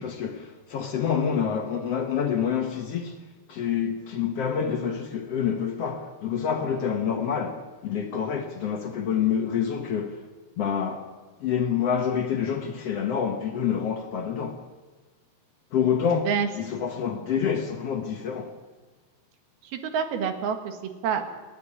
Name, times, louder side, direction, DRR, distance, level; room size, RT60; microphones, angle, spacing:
voice 1, 0.0-3.2 3.5-10.2 10.6-11.1 11.4-14.6 15.7-18.5, left 7 dB, 80° left, 1.3 m, -27 dB
voice 2, 19.6-21.2, right 7 dB, 70° right, 3.4 m, -27 dB
28.5 x 11.0 x 9.9 m
omnidirectional pair, 4.8 m